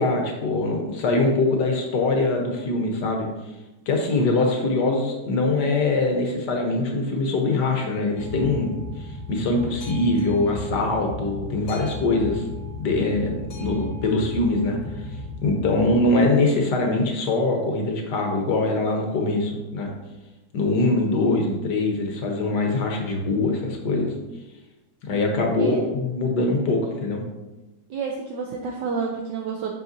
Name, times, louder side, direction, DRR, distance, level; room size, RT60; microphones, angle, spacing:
voice 1, 0.0-3.3 3.9-12.4 12.8-14.8 15.4-19.9 20.5-24.1 25.0-27.2, left 2 dB, 65° left, 2 dB, 1.4 m, -23 dB
Boat Water vehicle, 8.2-16.1, left 2 dB, 45° left, 1.6 m, -35 dB
voice 2, 27.9-29.8, right 5 dB, 70° right, 1 dB, 1.2 m, -29 dB
7.6 x 5.6 x 2.7 m, 1.1 s
omnidirectional pair, 2.1 m